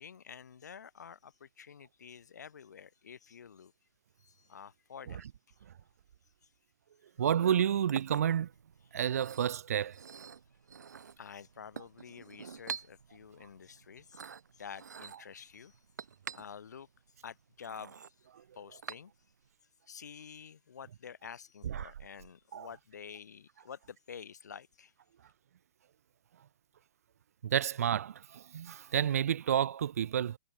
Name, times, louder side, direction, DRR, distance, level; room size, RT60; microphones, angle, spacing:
voice 1, 0.0-3.7 4.2-5.6 6.4-6.5 8.9-9.0 11.2-14.2 14.5-15.8 16.3-16.9 17.2-18.3 18.5-19.1 19.9-24.9, left 7 dB, 85° left, 0.9 m, -49 dB
voice 2, 7.2-8.5 8.9-9.9 21.6-21.9 22.5-22.7 27.4-30.4, right 9 dB, 60° right, 0.4 m, -30 dB
Chink clink, 7.4-19.5, right 6 dB, 90° right, 1.9 m, -48 dB
hypercardioid pair, 165°, 9 cm